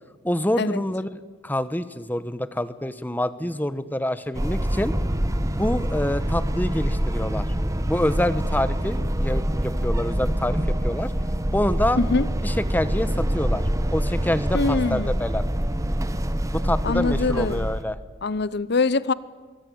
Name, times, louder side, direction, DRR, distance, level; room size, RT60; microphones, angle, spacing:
voice 1, 0.2-4.9 5.5-7.5 7.8-10.6 10.8-11.1 11.5-12.0 12.4-13.6 13.9-15.4 16.5-18.0, left 1 dB, 10° left, 14 dB, 1.1 m, -26 dB
sound 1, 4.3-17.8, equal, 15° right, 1.3 m, -25 dB
voice 2, 12.0-12.3 14.5-15.2 16.8-17.6 18.2-19.1, left 3 dB, 55° left, 18 dB, 0.8 m, -23 dB
24.5 x 23.5 x 9.6 m, 1.4 s
head